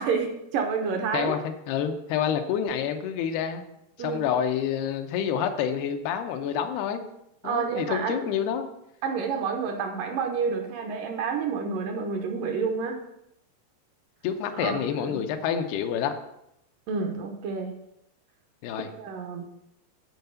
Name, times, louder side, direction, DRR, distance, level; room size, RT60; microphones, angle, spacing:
voice 1, 0.0-1.3 4.0-4.2 7.4-8.2 9.0-13.0 14.6-15.2 16.9-17.7 19.0-19.5, right 5 dB, 70° right, 3 dB, 2.3 m, -29 dB
voice 2, 1.1-3.6 4.0-7.0 7.4-8.7 14.2-16.1 18.6-18.9, left 8 dB, 85° left, 7 dB, 2.8 m, -28 dB
9.4 x 4.7 x 6.8 m, 0.80 s
omnidirectional pair, 4.4 m